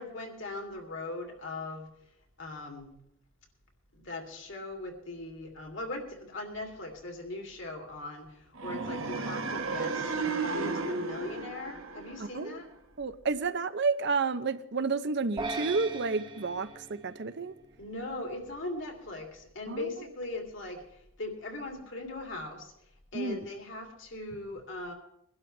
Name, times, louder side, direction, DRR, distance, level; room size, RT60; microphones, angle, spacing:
voice 1, 0.0-1.9 2.4-2.9 3.9-10.1 10.5-12.7 17.8-20.8 21.2-22.7 23.1-24.9, left 2 dB, 65° left, 2 dB, 2.9 m, -39 dB
sound 1, 8.5-12.7, right 3 dB, 85° right, 1.4 m, -34 dB
voice 2, 13.0-17.5 19.7-19.9 23.1-23.5, right 4 dB, 60° right, 12 dB, 0.7 m, -30 dB
sound 2, 15.4-17.8, right 3 dB, 25° right, 1.0 m, -39 dB
22.5 x 12.0 x 3.3 m, 0.74 s
head